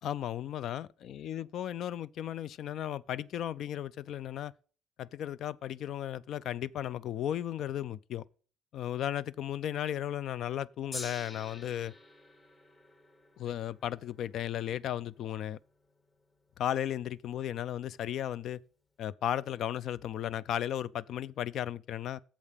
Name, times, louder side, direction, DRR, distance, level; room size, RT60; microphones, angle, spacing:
voice 1, 0.0-4.5 5.0-8.2 8.7-11.9 13.4-15.6 16.6-18.6 19.0-22.2, left 11 dB, 65° left, 0.3 m, -35 dB
Gong, 10.9-17.3 18.1-18.2, left 2 dB, 30° left, 1.5 m, -49 dB
7.2 x 5.3 x 6.5 m
supercardioid pair, 80°, 0 cm